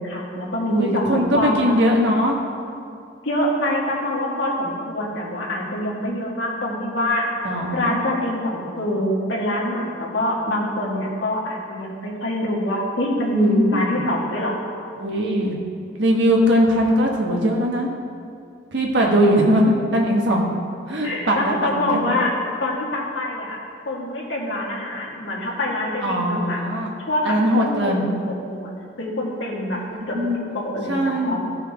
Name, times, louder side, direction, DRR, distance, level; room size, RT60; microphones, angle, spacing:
voice 1, 0.0-1.9 3.2-7.3 7.7-14.6 21.0-22.3 22.6-23.6 23.9-26.6 27.1-28.7 29.0-29.8 30.1-31.4, left 1 dB, 85° left, -3 dB, 1.9 m, -25 dB
voice 2, 0.7-2.4 7.4-8.0 13.4-14.0 15.0-15.5 16.0-17.9 18.7-20.4 20.9-22.1 26.0-26.9 27.2-28.0 30.1-30.4 30.9-31.4, equal, 75° right, -1 dB, 1.4 m, -20 dB
14.5 x 5.7 x 3.6 m, 2.4 s
head